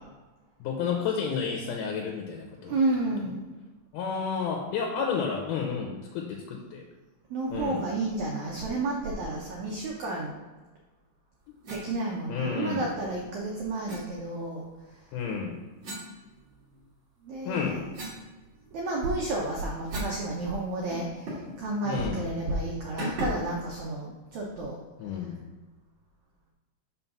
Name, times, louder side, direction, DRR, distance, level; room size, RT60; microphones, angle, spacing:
voice 1, 0.6-2.7 3.9-6.9 7.5-7.8 12.3-12.9 15.1-15.6 17.5-17.9 21.8-22.3 25.0-25.4, left 6 dB, 75° left, 1 dB, 2.1 m, -31 dB
voice 2, 2.6-3.6 7.3-10.4 11.7-14.7 14.9-15.0 17.2-17.7 18.7-24.8, right 2 dB, 85° right, -2 dB, 1.6 m, -31 dB
sound 1, 11.6-11.9 13.9-14.0 15.8-16.9 17.3-20.2 20.5-20.6 20.9-21.6 21.9-22.1 23.0-23.5, right 1 dB, 55° right, 1.4 m, -39 dB
5.7 x 3.9 x 5.8 m, 1.2 s
omnidirectional pair, 4.4 m